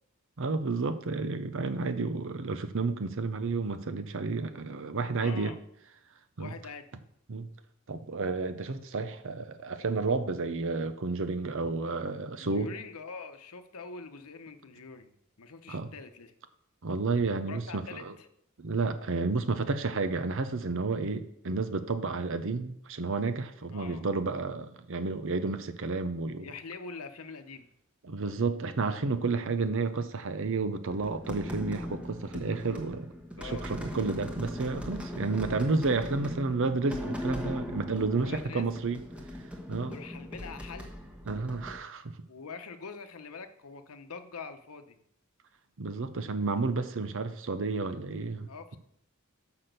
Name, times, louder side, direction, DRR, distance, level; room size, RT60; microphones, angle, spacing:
voice 1, 0.4-5.5 6.4-6.5 7.3-7.5 7.9-12.7 15.7-15.9 16.8-18.1 18.6-26.5 28.0-33.1 33.4-39.0 39.7-40.0 41.3-42.2 45.8-48.5, right 3 dB, 65° right, 0.7 m, -31 dB
voice 2, 5.2-5.6 6.4-6.9 12.4-16.3 17.5-18.3 23.7-24.1 26.4-27.7 33.4-33.7 38.2-38.7 39.9-40.9 42.3-45.0 48.5-48.8, left 4 dB, 85° left, 0.9 m, -44 dB
sound 1, 30.9-41.8, left 1 dB, 5° right, 1.1 m, -39 dB
6.0 x 5.9 x 6.6 m
head